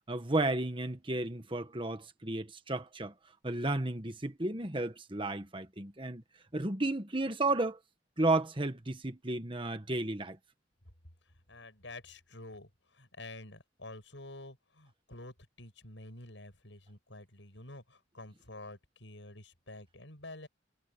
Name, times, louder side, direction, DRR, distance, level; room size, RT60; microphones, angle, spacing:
voice 1, 0.1-3.1 3.4-6.2 6.5-7.8 8.2-10.4, right 2 dB, 25° right, 1.5 m, -33 dB
voice 2, 11.5-20.5, left 2 dB, 75° left, 7.2 m, -49 dB
head